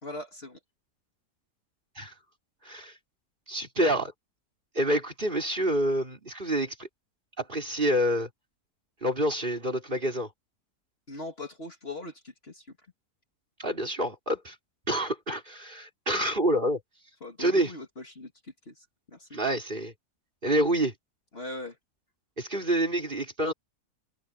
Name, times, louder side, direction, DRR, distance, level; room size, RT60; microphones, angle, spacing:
voice 1, 0.0-0.6 11.1-12.8 17.2-19.4 21.3-21.8, left 2 dB, 40° left, 2.7 m, -41 dB
voice 2, 3.5-4.1 4.7-6.9 7.4-8.3 9.0-10.3 13.6-14.5 14.9-16.8 17.4-17.7 19.3-19.9 20.4-20.9 22.4-23.5, right 1 dB, 30° right, 4.2 m, -27 dB
omnidirectional pair, 1.7 m